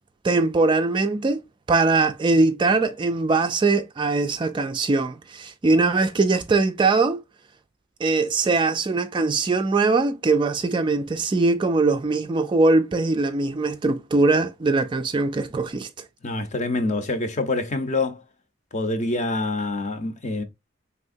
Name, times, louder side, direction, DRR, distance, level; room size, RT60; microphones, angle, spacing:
voice 1, 0.2-1.4 1.7-7.2 8.0-16.0, right 3 dB, 25° right, 0.3 m, -21 dB
voice 2, 16.2-18.2 18.7-20.4, left 2 dB, 35° left, 0.7 m, -26 dB
4.5 x 3.5 x 2.5 m
head